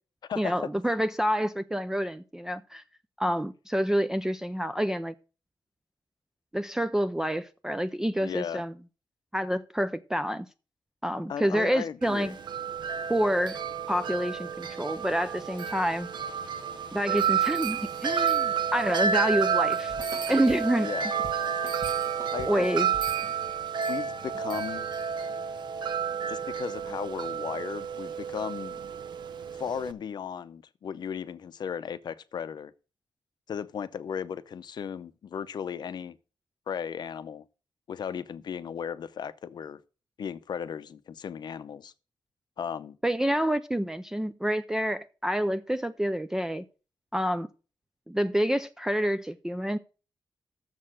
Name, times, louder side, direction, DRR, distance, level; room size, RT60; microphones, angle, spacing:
voice 1, 0.4-2.8 3.2-5.1 6.5-8.7 9.3-10.5 11.0-12.4 13.1-13.6 13.9-16.1 16.9-19.9 20.3-20.9 22.5-22.9 43.0-46.6 47.1-47.5 48.1-49.8, equal, 5° right, 0.4 m, -28 dB
voice 2, 8.2-8.6 11.3-12.3 20.8-21.1 22.3-22.9 23.9-24.9 26.3-28.8 29.6-32.7 33.5-36.2 36.7-37.4 37.9-39.8 40.2-41.9 42.6-43.0, left 7 dB, 60° left, 0.6 m, -36 dB
Wind chime, 12.0-29.9, right 7 dB, 70° right, 0.7 m, -30 dB
sound 1, 17.6-18.8 19.3-29.3, right 2 dB, 45° right, 1.5 m, -49 dB
6.9 x 6.6 x 7.5 m
wide cardioid pair, 160°, 8 cm